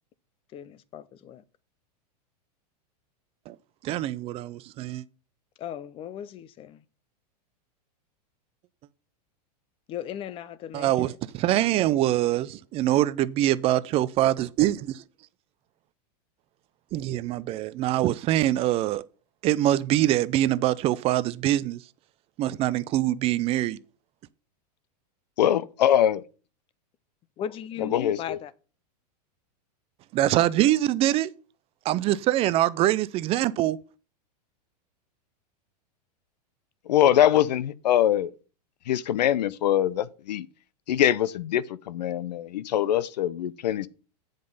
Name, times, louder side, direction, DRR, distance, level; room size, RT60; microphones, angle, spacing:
voice 1, 0.5-1.4 5.6-6.8 9.9-11.2 11.7-11.8 27.4-28.5, left 9 dB, 25° left, 0.5 m, -37 dB
voice 2, 3.8-5.0 10.7-15.0 16.9-19.0 19.4-21.8 22.4-23.8 30.1-31.3 31.9-33.8, right 14 dB, 30° right, 0.3 m, -24 dB
voice 3, 25.4-26.2 27.9-28.4 36.9-38.3 38.9-40.5 40.9-43.9, left 11 dB, 85° left, 0.5 m, -23 dB
7.7 x 5.2 x 5.4 m
hypercardioid pair, 130°, 21 cm